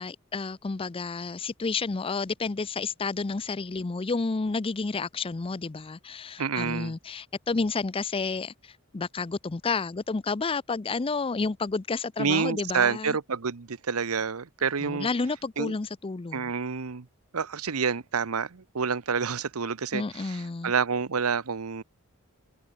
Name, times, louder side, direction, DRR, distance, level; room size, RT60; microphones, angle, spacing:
voice 1, 0.0-13.2 14.8-16.5 19.9-20.7, left 4 dB, 25° left, 0.5 m, -30 dB
voice 2, 6.4-6.9 12.2-15.1 15.6-15.7 16.3-17.1 17.3-21.8, right 6 dB, 80° right, 0.9 m, -28 dB
head